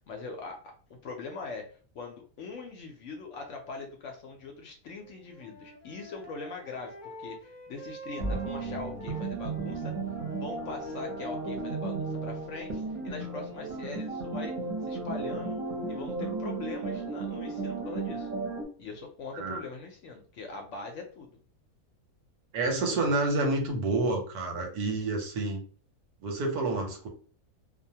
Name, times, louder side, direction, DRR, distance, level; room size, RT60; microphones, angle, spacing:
voice 1, 0.1-1.7 1.9-9.9 10.3-14.5 14.8-15.6 15.9-18.3 18.8-21.3, left 4 dB, 65° left, 2 dB, 0.8 m, -42 dB
Wind instrument woodwind instrument, 5.0-11.4, right 1 dB, 30° left, 0.9 m, -47 dB
sound 1, 8.2-18.6, right 3 dB, 35° right, 0.7 m, -34 dB
voice 2, 22.5-25.6 26.2-27.1, right 2 dB, 90° right, 3 dB, 1.2 m, -29 dB
2.6 x 2.1 x 2.7 m, 0.41 s
omnidirectional pair, 1.6 m